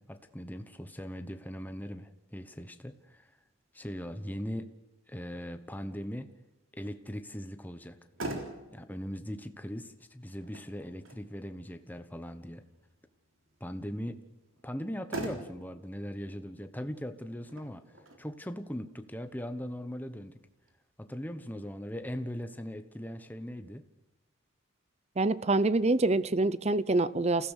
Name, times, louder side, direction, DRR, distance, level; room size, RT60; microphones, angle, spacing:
voice 1, 0.0-3.3 3.7-4.7 5.1-6.3 6.7-8.0 8.7-12.6 13.6-14.2 14.6-17.8 18.2-20.4 21.0-23.8, equal, 10° left, 9 dB, 1.1 m, -39 dB
Motor vehicle (road), 7.8-20.8, right 1 dB, 70° right, 3.7 m, -46 dB
voice 2, 25.2-27.5, right 2 dB, 30° right, 17 dB, 0.7 m, -26 dB
29.0 x 16.0 x 6.6 m, 1.0 s
head